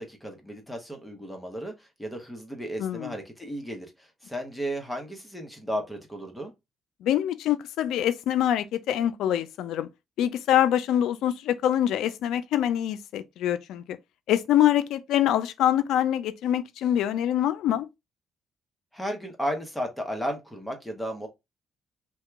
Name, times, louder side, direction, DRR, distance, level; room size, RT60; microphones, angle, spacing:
voice 1, 0.0-6.5 18.9-21.3, equal, 5° left, 0.9 m, -34 dB
voice 2, 2.8-3.1 7.0-9.9 10.2-14.0 14.3-17.9, left 11 dB, 85° left, 0.3 m, -25 dB
2.8 x 2.2 x 3.4 m
cardioid pair, 90°, 0 cm